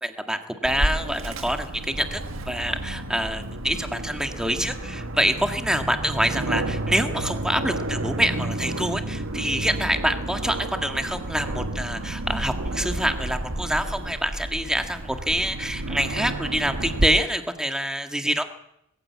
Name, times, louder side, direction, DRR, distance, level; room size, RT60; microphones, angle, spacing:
voice 1, 0.0-2.2 2.5-18.4, equal, 5° right, 6 dB, 1.8 m, -26 dB
Aircraft, 0.6-17.1, right 1 dB, 75° right, 1.8 m, -31 dB
21.0 x 15.5 x 8.5 m, 0.79 s
head